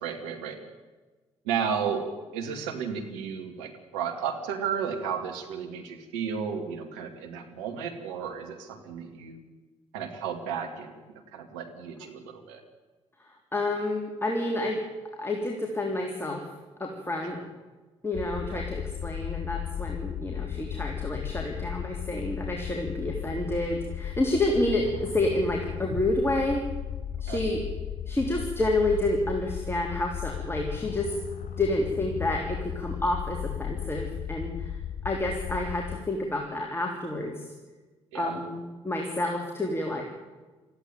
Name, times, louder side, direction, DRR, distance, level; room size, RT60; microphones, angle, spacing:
voice 1, 0.0-0.6 1.4-2.1 2.3-9.4 9.9-12.6 17.3-17.4 18.5-18.7 27.3-27.4 38.1-38.4, right 7 dB, 75° right, 4 dB, 2.4 m, -33 dB
voice 2, 13.5-14.8 15.2-16.5 16.8-17.4 18.0-26.6 27.2-27.6 28.1-31.1 31.6-34.8 35.0-37.5 38.1-40.0, left 1 dB, 15° left, 1 dB, 3.5 m, -29 dB
sound 1, 18.1-36.0, left 9 dB, 55° left, 4.1 m, -35 dB
19.5 x 14.5 x 9.3 m, 1.3 s
hypercardioid pair, 45°, 15 cm